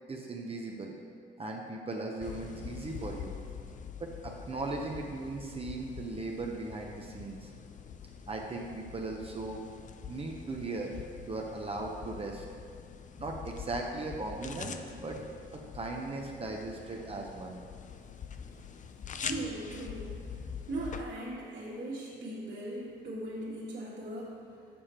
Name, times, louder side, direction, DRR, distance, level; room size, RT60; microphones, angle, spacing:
voice 1, 0.1-0.9 1.4-3.4 4.0-7.5 8.3-9.6 10.1-11.0 11.3-12.4 13.2-15.2 15.5-17.6, right 2 dB, 30° right, 0 dB, 0.9 m, -38 dB
sound 1, 2.2-21.0, left 7 dB, 40° left, 0.5 m, -44 dB
voice 2, 19.2-20.1 20.7-24.4, right 1 dB, 55° right, -9 dB, 1.9 m, -39 dB
7.0 x 7.0 x 4.4 m, 2.3 s
cardioid pair, 90°, 20 cm